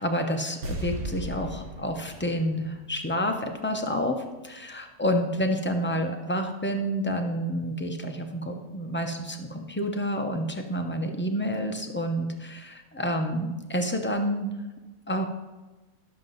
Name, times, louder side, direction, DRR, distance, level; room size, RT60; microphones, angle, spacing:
voice 1, 0.0-14.5 15.1-15.2, equal, 15° left, 4 dB, 0.4 m, -29 dB
sound 1, 0.6-3.8 4.1-4.2, equal, 85° right, 1.7 m, -37 dB
11.0 x 7.4 x 3.9 m, 1.2 s
omnidirectional pair, 1.5 m